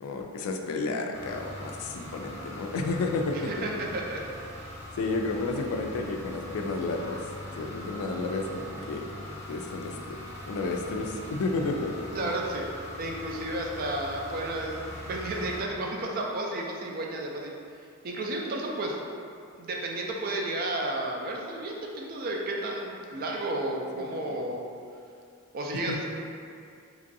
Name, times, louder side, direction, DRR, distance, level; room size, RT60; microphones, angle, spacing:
voice 1, 0.0-3.7 5.0-7.3 7.6-9.1 9.5-10.0 10.3-11.9 25.9-26.0, left 3 dB, 90° left, 4 dB, 0.3 m, -31 dB
sound 1, 1.1-15.6, left 1 dB, 15° left, 0.6 m, -41 dB
voice 2, 3.3-4.2 12.1-12.6 13.0-14.8 15.1-17.6 18.0-18.9 19.6-24.7 25.5-26.0, right 1 dB, 45° right, -1 dB, 0.4 m, -32 dB
2.9 x 2.6 x 2.6 m, 2.4 s
head